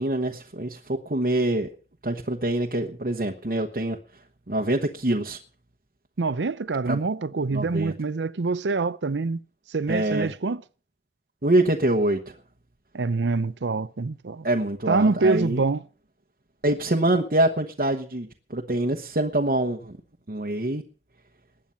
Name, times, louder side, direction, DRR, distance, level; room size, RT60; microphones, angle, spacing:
voice 1, 0.0-1.7 2.0-4.0 4.5-5.4 6.9-7.0 7.5-7.9 9.9-10.3 11.4-12.3 14.4-15.6 16.6-20.0 20.3-20.8, right 1 dB, 50° right, 1.1 m, -25 dB
voice 2, 6.2-9.4 9.7-10.6 12.9-14.5 14.9-15.8, right 3 dB, 85° right, 0.6 m, -25 dB
20.0 x 9.0 x 5.7 m
head